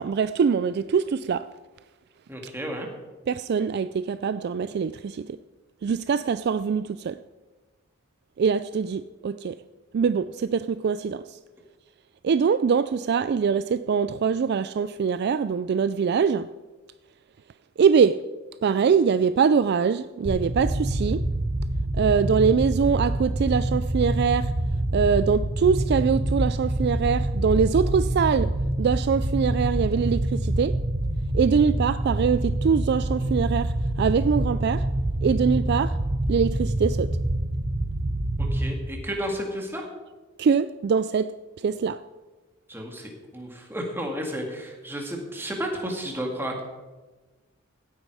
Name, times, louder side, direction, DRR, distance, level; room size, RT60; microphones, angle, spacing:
voice 1, 0.0-1.5 3.3-5.4 5.8-7.2 8.4-9.6 9.9-11.4 12.2-16.5 17.8-18.2 18.6-21.2 21.9-24.5 24.9-28.5 28.8-30.7 31.3-34.8 35.2-36.0 36.3-37.1 40.4-41.3 41.6-42.0, right 6 dB, 50° right, 13 dB, 0.3 m, -23 dB
voice 2, 2.3-2.9 38.4-39.9 42.7-46.6, equal, 10° right, 1 dB, 2.1 m, -32 dB
sound 1, 20.2-38.7, right 1 dB, 35° right, 1.0 m, -26 dB
16.5 x 9.4 x 4.8 m, 1.2 s
head